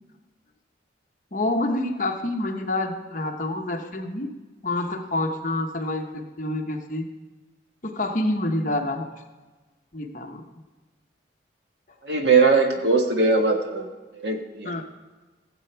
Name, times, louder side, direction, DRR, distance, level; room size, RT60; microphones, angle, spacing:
voice 1, 1.3-4.3 4.6-7.0 7.8-9.2 9.9-10.4 14.6-14.8, left 2 dB, 45° left, 4 dB, 1.0 m, -27 dB
voice 2, 12.0-13.9 14.1-14.8, right 4 dB, 65° right, 3 dB, 1.4 m, -20 dB
16.0 x 7.8 x 4.5 m, 1.3 s
head